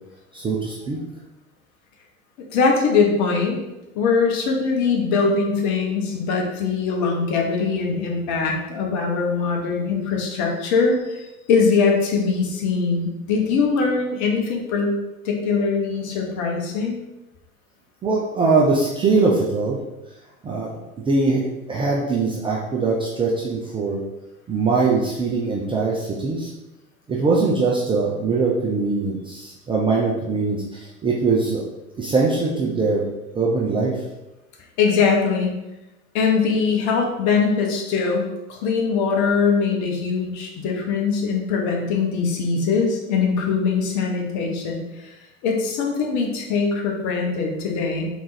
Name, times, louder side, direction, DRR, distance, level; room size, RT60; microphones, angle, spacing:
voice 1, 0.3-1.0 18.0-19.8 20.4-20.7 21.1-21.4 21.7-24.0 24.5-26.5 27.1-31.6 32.0-33.1 33.3-33.9, right 4 dB, 15° right, -4 dB, 0.4 m, -21 dB
voice 2, 2.5-3.6 3.9-14.9 15.2-17.0 34.8-35.5 36.1-45.1 45.4-48.1, left 5 dB, 40° left, 0 dB, 1.1 m, -22 dB
3.7 x 3.1 x 4.0 m, 0.98 s
figure-of-eight pair, 85°, 42 cm